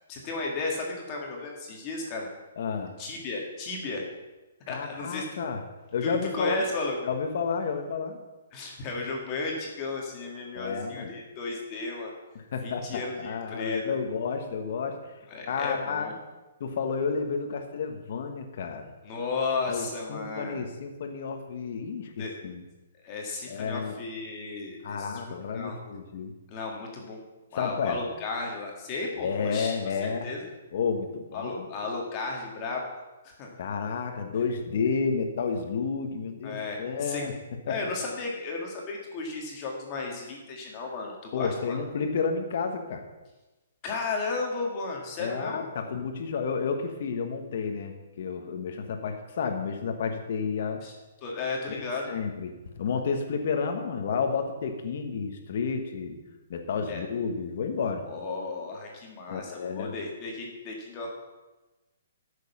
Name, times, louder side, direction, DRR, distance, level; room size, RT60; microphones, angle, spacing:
voice 1, 0.1-2.3 3.0-4.0 4.7-5.3 6.0-7.0 8.5-12.1 12.6-14.0 15.3-16.1 19.0-20.6 22.2-22.3 23.0-25.7 26.5-27.2 27.5-29.8 30.0-30.5 31.3-32.8 33.2-33.5 36.4-37.2 37.7-41.8 43.8-45.7 50.8-50.9 51.2-52.1 56.9-57.0 58.1-61.1, left 3 dB, 20° left, 0 dB, 1.7 m, -34 dB
voice 2, 2.6-2.9 4.7-5.6 5.9-6.6 7.0-8.2 10.5-11.1 12.5-15.0 15.4-16.1 16.6-18.9 19.7-22.6 23.5-24.0 24.8-26.3 27.5-28.0 29.2-30.3 30.7-31.7 33.6-37.3 37.7-37.8 41.3-43.0 45.2-50.8 51.7-56.2 56.5-58.0 59.3-59.9, left 5 dB, 40° left, 5 dB, 1.3 m, -31 dB
13.5 x 6.6 x 5.5 m, 1.1 s
hypercardioid pair, 180°, 0 cm